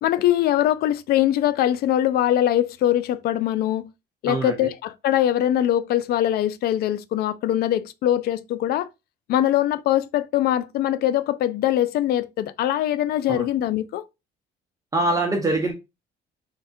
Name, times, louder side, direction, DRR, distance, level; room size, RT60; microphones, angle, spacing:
voice 1, 0.0-3.9 4.2-8.9 9.3-14.1, left 12 dB, 65° left, 0.4 m, -22 dB
voice 2, 4.3-4.7 13.3-13.5 14.9-15.7, right 2 dB, 20° right, 0.8 m, -24 dB
3.4 x 3.3 x 2.8 m
cardioid pair, 110°, 17 cm